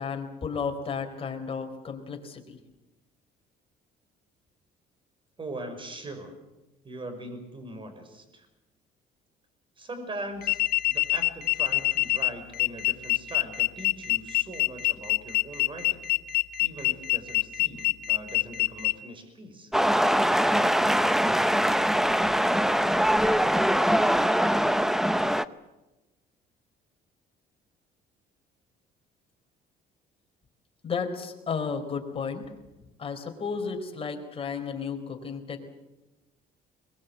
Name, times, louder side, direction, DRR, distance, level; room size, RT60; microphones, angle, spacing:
voice 1, 0.0-2.6 30.8-32.4 33.0-35.6, left 5 dB, 35° left, 4 dB, 4.3 m, -33 dB
voice 2, 5.4-6.3 6.8-8.5 9.8-10.6 10.9-16.1 16.6-19.7, right 1 dB, 30° right, 8 dB, 5.9 m, -41 dB
sound 1, 10.4-18.9, left 17 dB, 65° left, 1.1 m, -25 dB
sound 2, 19.7-25.4, equal, ahead, 0.8 m, -22 dB
22.5 x 21.5 x 8.3 m, 1.0 s
cardioid pair, 110°, 17 cm